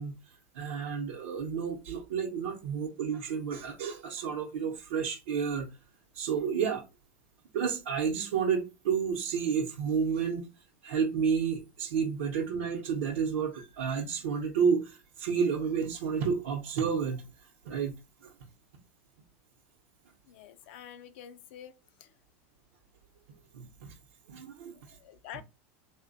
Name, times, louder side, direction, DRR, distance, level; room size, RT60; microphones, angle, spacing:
voice 1, 0.0-5.7 6.1-6.8 7.5-10.5 10.8-18.0 18.2-18.3 23.5-23.9 24.3-25.0, right 6 dB, 90° right, 0.7 m, -31 dB
voice 2, 20.3-22.1 24.7-25.4, left 10 dB, 70° left, 0.4 m, -48 dB
3.3 x 2.1 x 3.8 m
supercardioid pair, 145°, 7 cm